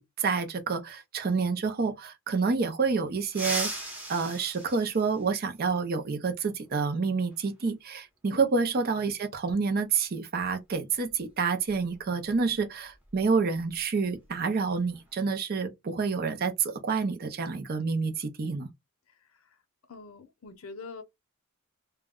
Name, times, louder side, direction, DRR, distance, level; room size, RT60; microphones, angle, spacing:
voice 1, 0.0-3.7 4.1-18.7, right 4 dB, 45° right, 0.5 m, -28 dB
sound 1, 3.3-5.7 7.3-7.4 8.7-8.8 10.4-10.5 10.9-11.1 11.6-13.8 14.0-14.3 14.7-15.2, right 1 dB, 5° right, 0.7 m, -38 dB
voice 2, 19.9-21.0, left 4 dB, 70° left, 0.6 m, -43 dB
2.1 x 2.1 x 3.5 m
head